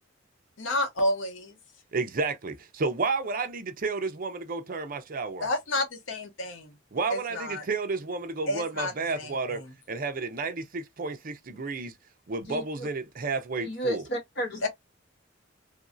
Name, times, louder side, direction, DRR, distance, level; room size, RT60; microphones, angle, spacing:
voice 1, 0.6-1.5 5.4-6.7 7.1-7.6 8.5-9.7 14.6-14.7, left 1 dB, 85° left, 0.8 m, -30 dB
voice 2, 1.9-5.5 6.9-11.9 12.3-14.0, right 4 dB, 50° right, 0.6 m, -31 dB
voice 3, 12.5-12.9 13.6-14.7, right 1 dB, 60° left, 1.6 m, -32 dB
3.0 x 2.6 x 2.5 m
head